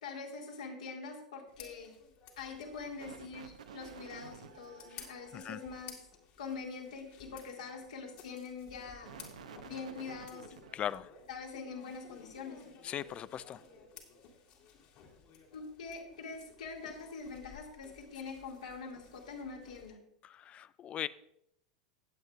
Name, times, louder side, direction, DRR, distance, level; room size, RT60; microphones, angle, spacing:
voice 1, 0.0-1.9 2.4-6.0 6.4-9.1 9.7-10.6 11.3-12.8 15.5-20.0, left 4 dB, 70° left, 0 dB, 2.1 m, -44 dB
sound 1, 1.5-19.9, left 6 dB, 50° left, 2.2 m, -56 dB
sound 2, 2.6-5.8 8.6-10.8, right 7 dB, 75° right, 0.8 m, -52 dB
voice 2, 10.7-11.1 12.8-13.6 20.2-21.1, left 10 dB, 30° left, 18 dB, 0.4 m, -39 dB
18.5 x 7.7 x 2.4 m, 0.77 s
figure-of-eight pair, 90°, 4 cm